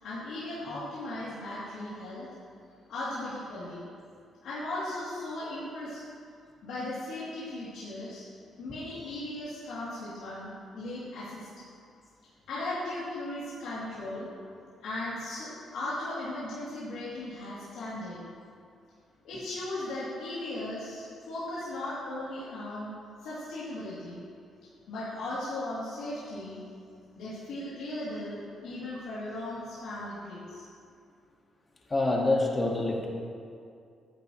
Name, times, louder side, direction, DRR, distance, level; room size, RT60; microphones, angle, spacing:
voice 1, 0.0-2.3 2.9-3.8 4.4-6.0 6.6-8.2 8.6-11.5 12.5-14.3 14.8-18.2 19.2-22.9 23.2-24.2 24.9-26.6 27.2-30.6, left 1 dB, 80° left, -11 dB, 2.9 m, -37 dB
voice 2, 31.9-33.1, left 2 dB, 30° left, -1 dB, 1.8 m, -26 dB
14.0 x 10.0 x 3.1 m, 2.3 s
cardioid pair, 90°, 0 cm